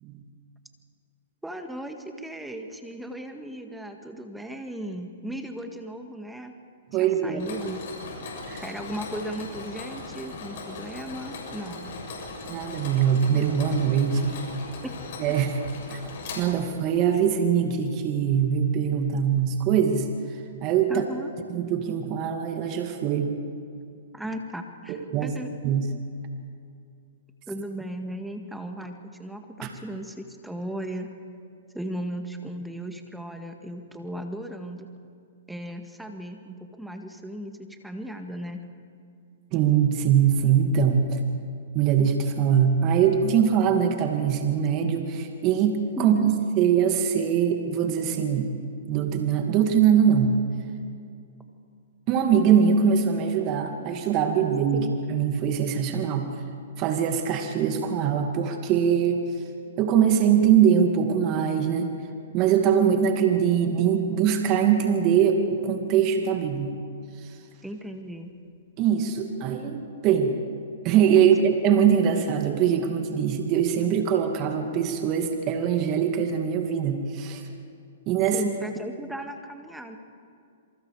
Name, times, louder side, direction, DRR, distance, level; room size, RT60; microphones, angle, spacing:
voice 1, 1.4-6.5 7.0-7.8 8.6-12.0 14.8-14.9 20.9-21.3 24.1-25.5 27.5-31.1 31.7-34.9 35.5-38.7 46.0-46.4 54.7-55.0 67.6-68.3 78.3-80.0, right 1 dB, 5° right, 5 dB, 1.9 m, -36 dB
voice 2, 6.9-7.4 8.5-8.6 12.5-14.5 15.2-15.6 15.9-16.0 16.4-20.1 20.6-21.0 21.5-23.3 24.9-25.3 25.6-25.9 29.6-29.7 39.5-41.2 41.7-48.5 48.9-50.4 52.1-56.3 56.8-59.2 59.8-61.9 62.3-66.7 67.2-67.4 68.8-70.4 70.8-77.4 78.1-78.4, right 8 dB, 35° right, 4 dB, 2.2 m, -22 dB
Mechanisms, 7.4-16.9, left 3 dB, 55° left, 7.0 m, -38 dB
27.5 x 23.5 x 4.9 m, 2.4 s
hypercardioid pair, 130°, 0 cm